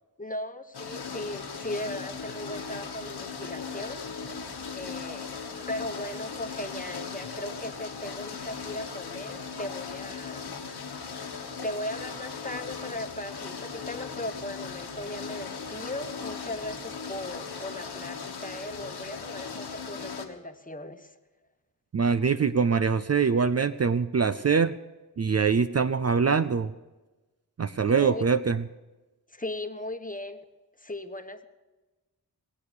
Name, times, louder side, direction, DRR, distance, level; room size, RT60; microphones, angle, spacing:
voice 1, 0.2-4.3 4.8-10.5 11.6-21.1 27.9-28.2 29.3-30.5 30.8-31.5, left 1 dB, 20° left, 8 dB, 1.2 m, -38 dB
sound 1, 0.7-20.3, left 5 dB, 80° left, 1.5 m, -38 dB
voice 2, 21.9-24.7 25.2-26.7 27.6-28.6, right 5 dB, 40° right, 12 dB, 0.5 m, -23 dB
21.5 x 8.5 x 6.8 m, 1.1 s
cardioid pair, 45°, 39 cm